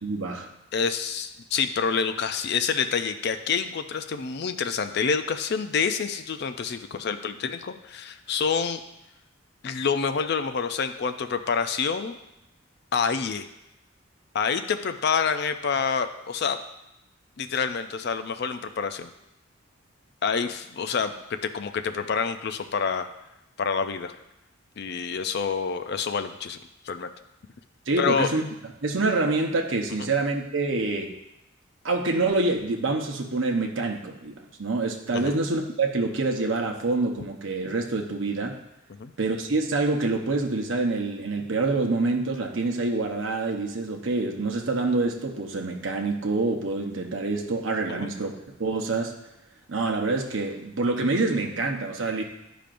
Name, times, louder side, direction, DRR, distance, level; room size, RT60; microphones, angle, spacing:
voice 1, 0.0-0.5 27.9-28.4 28.8-31.1 31.8-34.3 34.6-38.6 39.2-48.3 48.6-49.1 49.7-52.2, right 3 dB, 65° right, 1 dB, 0.8 m, -26 dB
voice 2, 0.7-8.8 9.6-12.2 12.9-13.5 14.3-16.6 17.4-19.1 20.2-23.1 23.6-24.1 24.8-26.6 26.9-27.1 28.0-28.3 30.0-30.1 35.1-35.4 39.0-39.1 47.9-48.1, left 6 dB, 50° left, 9 dB, 0.4 m, -27 dB
10.5 x 5.0 x 2.5 m, 0.88 s
head